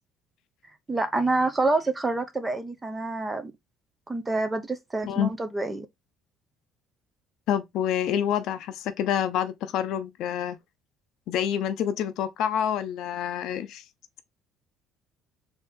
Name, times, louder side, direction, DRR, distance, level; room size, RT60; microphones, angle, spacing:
voice 1, 0.9-3.5 4.1-5.9, right 2 dB, 15° right, 0.7 m, -27 dB
voice 2, 7.5-10.6 11.3-13.8, left 9 dB, 65° left, 0.6 m, -27 dB
4.1 x 2.8 x 3.5 m
cardioid pair, 140°, 0 cm